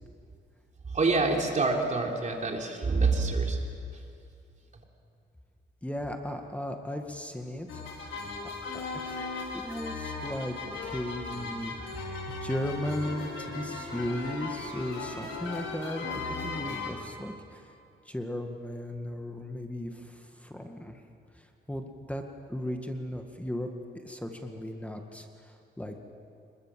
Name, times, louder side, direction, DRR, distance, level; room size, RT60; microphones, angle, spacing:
voice 1, 0.9-3.6, right 3 dB, 40° right, 1 dB, 3.6 m, -26 dB
voice 2, 5.8-7.8 8.4-9.3 9.5-10.6 10.8-11.7 12.4-17.7 18.1-21.0 21.4-22.2 22.5-23.7 24.0-26.0, left 1 dB, 5° left, 4 dB, 1.9 m, -36 dB
sound 1, 7.7-16.9, left 3 dB, 90° left, 5.2 m, -37 dB
26.0 x 22.0 x 7.6 m, 2.5 s
cardioid pair, 95°, 19 cm